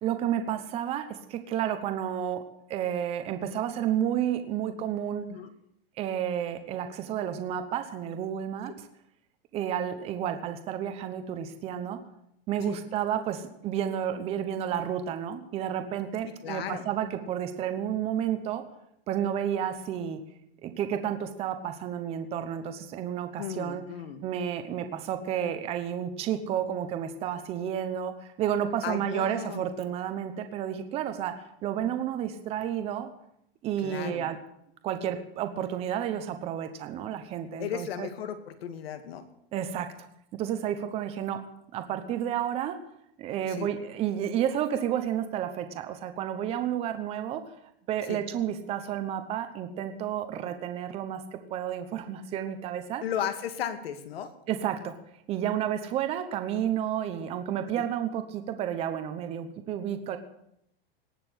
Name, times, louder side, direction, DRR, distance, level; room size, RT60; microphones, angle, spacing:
voice 1, 0.0-2.4 2.7-5.3 6.0-8.7 9.5-12.0 12.5-18.6 19.1-20.2 20.6-23.8 24.2-31.3 31.6-33.1 33.6-34.4 34.8-38.1 39.5-39.9 40.3-41.4 41.7-42.8 43.2-47.5 47.9-53.0 54.5-54.9 55.3-60.2, right 10 dB, 20° right, 8 dB, 1.0 m, -31 dB
voice 2, 16.2-16.9 23.4-24.2 28.8-29.7 33.8-34.3 37.6-39.2 43.5-43.7 48.1-48.2 53.0-54.3 57.8-57.9, left 9 dB, 85° left, 9 dB, 2.2 m, -35 dB
18.5 x 6.9 x 9.7 m, 0.76 s
supercardioid pair, 175°, 29 cm